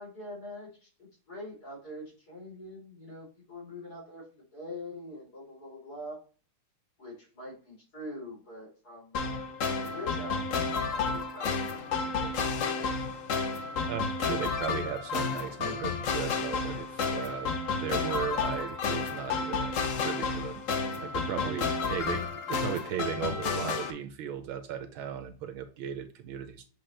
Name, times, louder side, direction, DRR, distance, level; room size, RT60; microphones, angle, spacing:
voice 1, 0.0-6.2 7.0-9.4 9.7-12.9 21.4-22.0, left 1 dB, 45° left, -4 dB, 4.1 m, -44 dB
sound 1, 9.1-23.9, left 4 dB, 70° left, 0.7 m, -31 dB
voice 2, 13.9-19.7 20.0-20.6 21.0-26.7, right 9 dB, 75° right, 9 dB, 1.4 m, -36 dB
7.8 x 4.2 x 3.3 m, 0.38 s
omnidirectional pair, 2.4 m